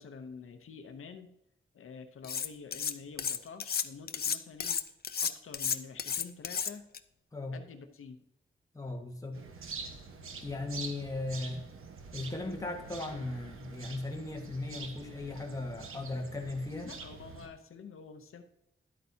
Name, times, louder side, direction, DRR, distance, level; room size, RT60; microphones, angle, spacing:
voice 1, 0.0-1.4 1.7-4.8 5.2-6.9 7.5-8.2 16.8-18.4, left 5 dB, 80° left, 8 dB, 0.7 m, -48 dB
Cutlery silverware, 2.2-2.9 3.2-7.0, left 7 dB, 50° left, 0.5 m, -32 dB
voice 2, 8.7-9.4 10.4-11.6 12.1-16.9, left 2 dB, 15° left, 1 dB, 1.5 m, -37 dB
sound 1, 9.3-17.5, right 4 dB, 85° right, 1.1 m, -46 dB
11.5 x 8.5 x 2.8 m, 0.83 s
wide cardioid pair, 125°, 21 cm